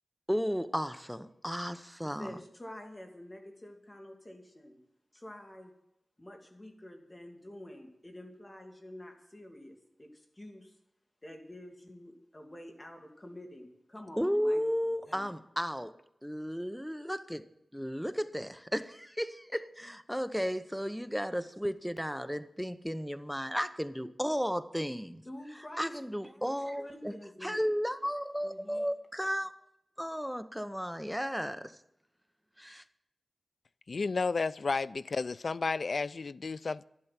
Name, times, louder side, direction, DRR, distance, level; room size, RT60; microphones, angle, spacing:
voice 1, 0.3-2.4 14.2-15.9 16.2-17.4 17.7-25.2 25.8-27.1 27.4-29.5 30.0-31.7 32.6-32.8, equal, ahead, 0.8 m, -34 dB
voice 2, 2.2-4.8 5.1-5.7 6.2-10.7 11.2-15.3 25.2-25.9 26.4-26.5 26.8-27.7 28.4-28.9, left 1 dB, 25° left, 2.6 m, -48 dB
voice 3, 33.9-36.8, left 4 dB, 65° left, 0.4 m, -32 dB
12.0 x 11.5 x 5.9 m
wide cardioid pair, 85°, 0 cm